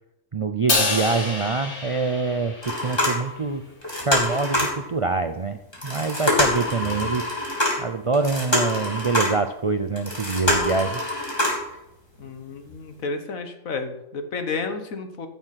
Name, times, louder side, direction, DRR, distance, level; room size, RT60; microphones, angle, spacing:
voice 1, 0.3-3.6 4.0-5.6 5.8-7.3 7.8-11.0, right 4 dB, 50° right, 9 dB, 0.3 m, -25 dB
Crash cymbal, 0.7-3.1, left 3 dB, 55° left, 2.1 m, -26 dB
sound 1, 2.6-3.5 3.8-4.8 5.7-9.5 10.0-11.7 12.2-12.3 12.7-12.8, left 1 dB, 20° left, 3.1 m, -25 dB
voice 2, 12.2-15.3, left 4 dB, 80° left, 7 dB, 1.7 m, -31 dB
15.0 x 7.2 x 5.8 m, 0.89 s
omnidirectional pair, 1.4 m